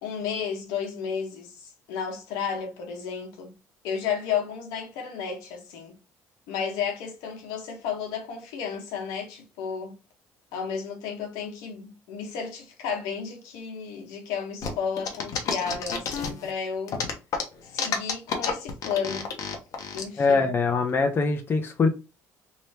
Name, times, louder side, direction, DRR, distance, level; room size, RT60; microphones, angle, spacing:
voice 1, 0.0-3.5 3.8-6.0 6.5-9.9 10.5-17.0 17.7-19.3 19.9-20.5, left 7 dB, 85° left, 1.3 m, -32 dB
sound 1, 14.6-16.5 16.9-20.0, left 6 dB, 60° left, 1.1 m, -29 dB
voice 2, 20.2-21.9, left 4 dB, 35° left, 0.8 m, -23 dB
3.3 x 3.0 x 2.9 m
supercardioid pair, 90°, 6 cm